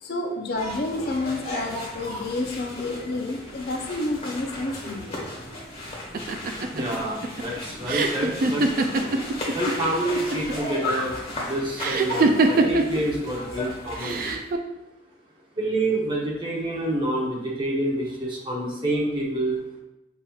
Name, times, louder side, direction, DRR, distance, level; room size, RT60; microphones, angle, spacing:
voice 1, 0.0-5.2, left 2 dB, 55° left, 2 dB, 0.5 m, -30 dB
sound 1, 0.5-14.3, left 1 dB, 35° left, 1.2 m, -35 dB
sound 2, 6.1-9.7 10.0-10.7 11.8-13.0 14.0-14.6, right 3 dB, 50° right, 0.3 m, -23 dB
voice 2, 6.7-8.6 9.5-14.2 15.6-19.6, right 1 dB, 25° right, -4 dB, 0.9 m, -27 dB
5.9 x 2.8 x 2.3 m, 0.95 s
head